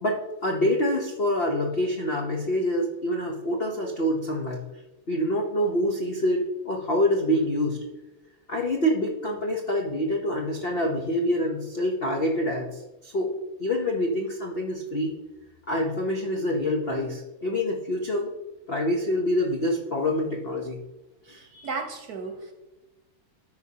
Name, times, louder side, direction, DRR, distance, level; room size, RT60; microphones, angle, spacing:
voice 1, 0.0-4.6 5.1-7.8 8.5-13.3 13.6-15.1 15.7-18.3 18.7-20.8 21.3-21.7, left 1 dB, 85° left, 0 dB, 0.5 m, -26 dB
voice 2, 21.6-22.5, right 4 dB, 60° right, 4 dB, 1.1 m, -33 dB
13.5 x 4.9 x 2.8 m, 1.0 s
omnidirectional pair, 2.2 m